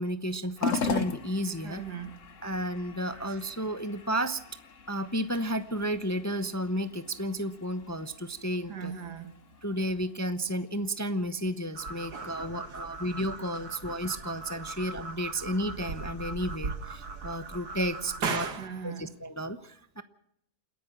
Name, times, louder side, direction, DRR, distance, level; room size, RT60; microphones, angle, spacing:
voice 1, 0.0-1.8 2.4-4.4 4.9-8.9 9.6-18.4 18.8-20.0, equal, 15° left, 0.7 m, -32 dB
sound 1, 0.6-19.2, left 5 dB, 55° left, 1.4 m, -42 dB
voice 2, 1.6-2.1 8.7-9.3 12.6-12.8 14.7-14.9 18.2-19.1, right 6 dB, 85° right, 2.3 m, -35 dB
sound 2, 11.7-18.5, right 3 dB, 70° right, 2.5 m, -40 dB
28.5 x 10.5 x 9.0 m
omnidirectional pair, 1.7 m